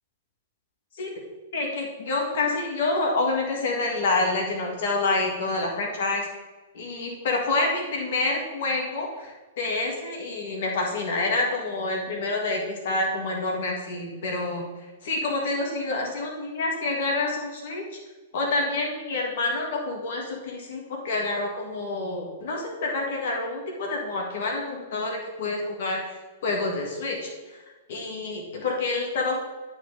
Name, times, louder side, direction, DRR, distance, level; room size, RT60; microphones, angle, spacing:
voice 1, 1.5-6.3 6.7-14.7 15.0-17.8 18.3-26.0 26.4-27.6 27.9-29.4, left 2 dB, 65° left, 0 dB, 1.9 m, -27 dB
11.0 x 4.7 x 4.0 m, 1.2 s
hypercardioid pair, 115°, 0 cm